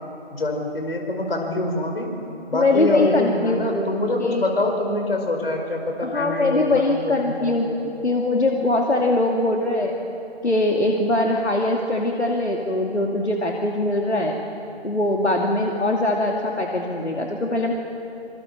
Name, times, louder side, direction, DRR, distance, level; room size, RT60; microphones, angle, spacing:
voice 1, 0.3-2.1 2.5-7.5, left 2 dB, 60° left, 2 dB, 5.2 m, -25 dB
voice 2, 2.5-3.9 4.2-4.4 6.0-9.9 10.4-14.4 14.8-17.7, left 2 dB, 85° left, 0 dB, 2.6 m, -22 dB
26.0 x 23.5 x 7.3 m, 2.9 s
figure-of-eight pair, 150°, 33 cm